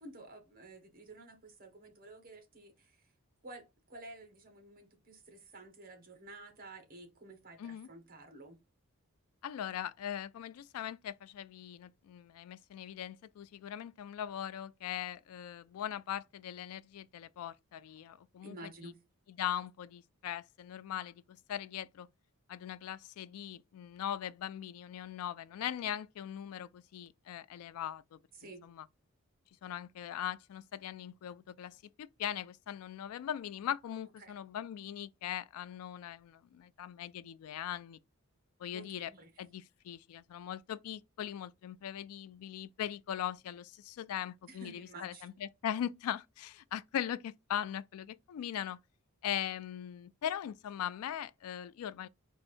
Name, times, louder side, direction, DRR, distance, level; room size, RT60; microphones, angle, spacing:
voice 1, 0.0-3.0 3.4-8.6 18.4-19.0 28.4-28.6 34.2-34.3 38.7-39.3 44.5-45.3, right 2 dB, 45° right, 1.3 m, -51 dB
voice 2, 7.6-7.9 9.4-18.9 19.3-22.1 22.5-28.2 28.6-28.9 29.6-38.0 38.6-39.1 39.4-48.8 49.2-52.1, left 10 dB, 85° left, 0.3 m, -40 dB
4.4 x 2.6 x 4.3 m
head